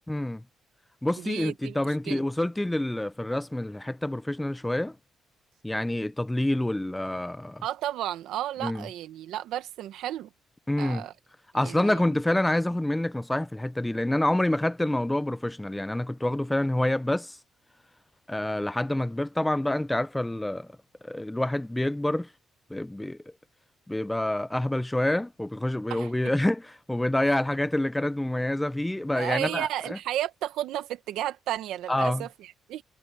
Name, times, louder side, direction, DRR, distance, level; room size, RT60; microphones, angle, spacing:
voice 1, 0.1-0.4 1.0-5.0 5.6-7.6 8.6-8.9 10.7-11.1 11.5-17.4 18.3-20.7 21.0-22.3 22.7-23.2 23.9-30.0 31.9-32.3, left 1 dB, 10° left, 0.8 m, -27 dB
voice 2, 1.2-2.2 7.6-10.3 10.8-11.1 11.5-12.0 25.9-26.1 29.1-32.8, right 13 dB, 85° right, 1.6 m, -33 dB
cardioid pair, 90°, 0 cm